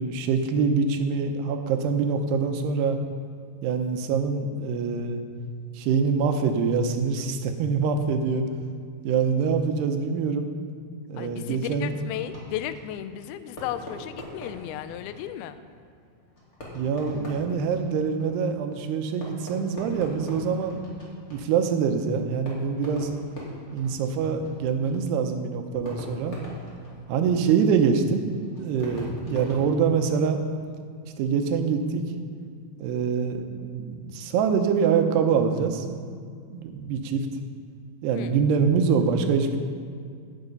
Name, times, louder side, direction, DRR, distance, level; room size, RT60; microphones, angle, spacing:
voice 1, 0.0-3.0 3.6-5.2 5.8-8.4 9.0-10.5 11.1-11.9 16.7-20.8 21.3-23.1 23.7-26.4 27.1-28.3 28.6-30.4 31.2-32.0 32.8-36.1 36.5-37.2 38.0-39.6, right 6 dB, 85° right, 6 dB, 3.0 m, -25 dB
voice 2, 11.2-15.6 38.1-38.3, left 11 dB, 80° left, 11 dB, 2.4 m, -34 dB
Fireworks, 11.7-30.5, left 1 dB, 25° left, 1.8 m, -43 dB
16.5 x 7.1 x 5.3 m, 2.2 s
omnidirectional pair, 4.6 m